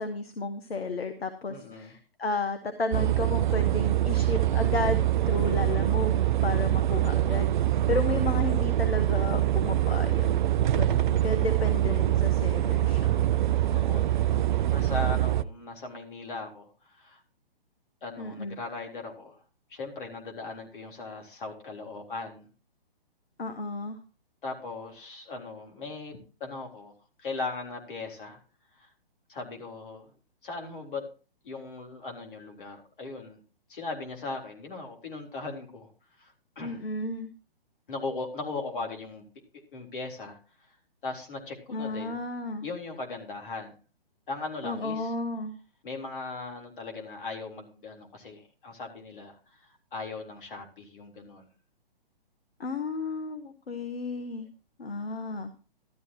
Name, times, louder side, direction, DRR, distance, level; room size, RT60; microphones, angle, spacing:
voice 1, 0.0-7.5 7.9-10.4 10.7-13.2 18.2-18.6 23.4-24.0 36.6-37.3 41.7-42.7 44.6-45.5 52.6-54.5 54.8-55.5, left 3 dB, 80° left, 9 dB, 1.3 m, -33 dB
voice 2, 1.5-1.9 5.4-5.8 9.6-10.0 13.6-16.7 17.0-17.2 18.0-19.4 19.7-22.5 24.4-26.9 27.2-28.4 28.7-28.9 29.3-30.1 30.4-31.0 31.4-33.4 33.7-35.9 36.2-36.8 37.9-39.2 39.7-40.4 41.0-42.2 42.6-43.8 44.3-45.1 45.8-49.4 49.9-51.4, left 3 dB, 60° left, 2 dB, 3.9 m, -38 dB
sound 1, 2.9-15.4, right 13 dB, 55° right, 0.5 m, -24 dB
13.0 x 12.5 x 3.0 m, 0.35 s
figure-of-eight pair, 135°, 30 cm